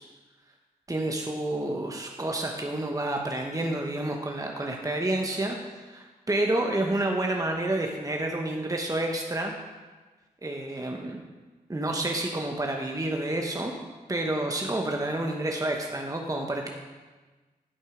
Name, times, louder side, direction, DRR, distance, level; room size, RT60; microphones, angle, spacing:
voice 1, 0.9-9.5 10.4-11.2 11.7-13.7 14.1-16.7, right 1 dB, 20° right, 2 dB, 1.0 m, -29 dB
9.7 x 5.4 x 5.0 m, 1.3 s
cardioid pair, 45°, 17 cm